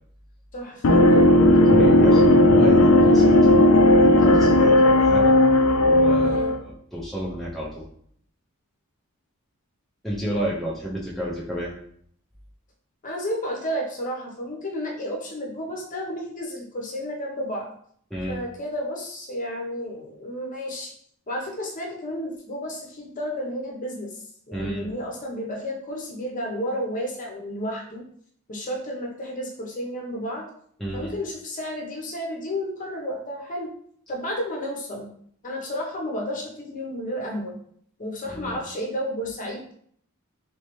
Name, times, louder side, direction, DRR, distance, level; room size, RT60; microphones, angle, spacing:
voice 1, 0.5-1.5 6.2-6.5 13.0-17.7 18.3-20.9 21.3-28.0 28.5-30.4 30.9-33.7 34.1-35.1 35.4-37.6 38.0-39.7, equal, 35° left, -1 dB, 0.8 m, -32 dB
sound 1, 0.8-6.6, left 1 dB, 75° left, 0.5 m, -15 dB
voice 2, 1.7-5.4 5.8-7.8 10.0-11.7 18.1-18.4 24.5-24.9 30.8-31.1 38.3-38.6, equal, ahead, -6 dB, 0.5 m, -31 dB
3.2 x 3.2 x 3.0 m, 0.62 s
head